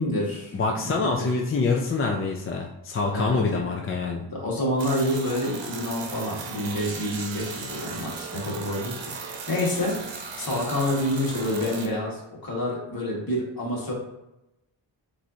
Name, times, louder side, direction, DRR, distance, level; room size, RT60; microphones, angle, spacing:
voice 1, 0.0-1.3 3.1-3.7 4.3-8.9 9.2-13.9, left 1 dB, 50° left, -4 dB, 1.6 m, -28 dB
voice 2, 0.5-4.3, left 4 dB, 30° left, 0 dB, 0.4 m, -26 dB
sound 1, 4.8-11.9, right 5 dB, 70° right, 0.8 m, -37 dB
7.3 x 2.7 x 2.7 m, 0.90 s
wide cardioid pair, 155°, 45 cm